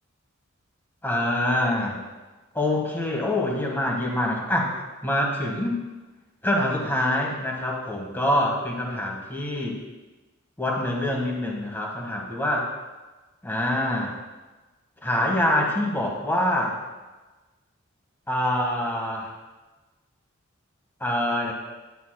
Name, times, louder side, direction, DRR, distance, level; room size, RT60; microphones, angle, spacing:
voice 1, 1.0-2.0 2.5-4.7 5.0-5.8 6.4-9.8 10.6-12.7 13.5-14.1 15.0-16.8 18.3-19.3 21.0-21.5, left 1 dB, 10° left, -2 dB, 1.1 m, -25 dB
9.5 x 9.3 x 2.2 m, 1.2 s
head